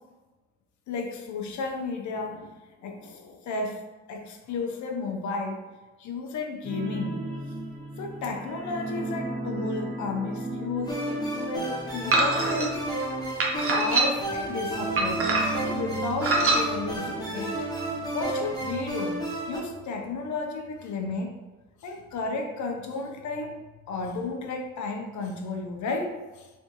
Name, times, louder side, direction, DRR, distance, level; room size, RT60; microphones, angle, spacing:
voice 1, 0.9-3.8 4.1-5.6 6.0-7.2 8.0-12.8 13.7-15.2 15.6-17.6 18.1-19.2 19.5-21.3 21.8-23.6 23.9-26.5, left 3 dB, 70° left, 3 dB, 0.7 m, -33 dB
sound 1, 6.6-19.9 20.2-20.4 20.8-20.9, right 2 dB, 20° right, 1.1 m, -37 dB
sound 2, 10.8-19.6, right 1 dB, 15° left, 0.9 m, -32 dB
sound 3, 12.1-12.7 13.4-14.3 15.0-15.7 16.2-16.6, right 3 dB, 45° right, 0.8 m, -24 dB
3.5 x 3.4 x 2.9 m, 1.2 s
cardioid pair, 90°, 30 cm